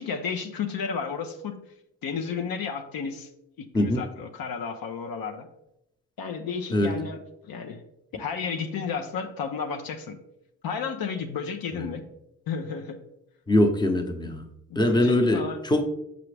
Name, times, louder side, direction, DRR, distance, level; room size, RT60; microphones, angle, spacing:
voice 1, 0.0-1.6 2.0-3.3 3.6-5.5 6.2-7.2 7.4-7.8 8.1-10.2 10.6-12.0 12.5-13.1 14.2-14.4 14.7-15.6, left 6 dB, 65° left, 0.7 m, -32 dB
voice 2, 13.5-14.4 14.8-15.8, left 1 dB, 10° left, 0.8 m, -22 dB
5.8 x 5.1 x 3.3 m
supercardioid pair, 60°, 38 cm